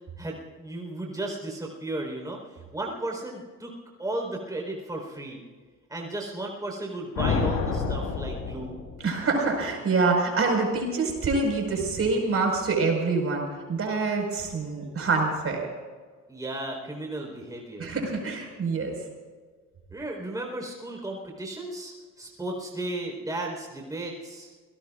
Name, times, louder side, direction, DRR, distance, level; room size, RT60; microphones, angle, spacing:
voice 1, 0.2-3.7 4.0-5.4 5.9-8.8 16.3-17.9 19.9-24.5, right 2 dB, 10° right, 0 dB, 4.4 m, -35 dB
sound 1, 7.2-9.3, left 5 dB, 90° left, 3.6 m, -28 dB
voice 2, 9.0-15.7 17.8-18.9, right 3 dB, 50° right, 1 dB, 5.2 m, -26 dB
29.0 x 18.0 x 2.5 m, 1.5 s
cardioid pair, 90°, 30 cm